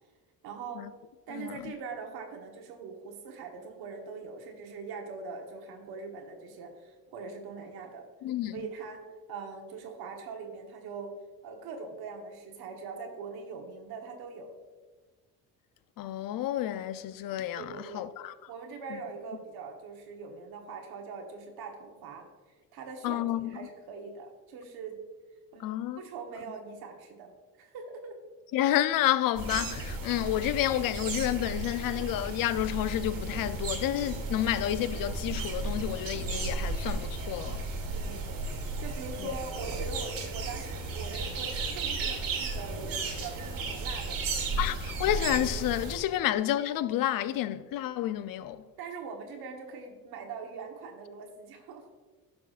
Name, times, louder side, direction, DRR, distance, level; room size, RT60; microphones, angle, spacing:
voice 1, 0.4-0.9 1.3-8.1 8.5-11.1 11.4-14.5 17.6-18.1 18.5-22.3 22.7-25.0 25.5-27.3 27.6-28.2 37.9-38.3 38.8-44.7 46.1-46.2 48.8-51.9, right 5 dB, 85° right, 1.3 m, -42 dB
voice 2, 8.2-8.6 16.0-18.3 18.9-19.0 23.0-23.5 25.6-26.0 28.5-37.6 39.2-39.4 44.6-48.6, left 13 dB, 65° left, 0.5 m, -30 dB
sound 1, 29.3-46.0, right 3 dB, 65° right, 1.6 m, -34 dB
11.5 x 6.0 x 2.5 m
cardioid pair, 85°, 36 cm